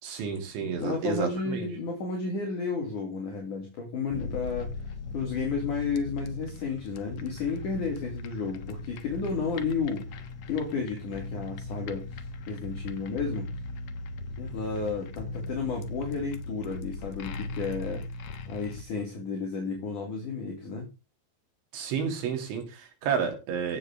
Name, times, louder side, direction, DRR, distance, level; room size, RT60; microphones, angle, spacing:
voice 1, 0.0-1.7 21.7-23.8, right 6 dB, 80° right, 4 dB, 5.6 m, -31 dB
voice 2, 0.6-4.7 5.1-12.1 12.5-13.5 14.4-18.0 18.5-20.9, left 4 dB, 45° left, 0 dB, 4.4 m, -32 dB
sound 1, 4.1-18.8, left 2 dB, 75° left, 1.6 m, -38 dB
16.5 x 8.5 x 3.8 m, 0.28 s
omnidirectional pair, 5.3 m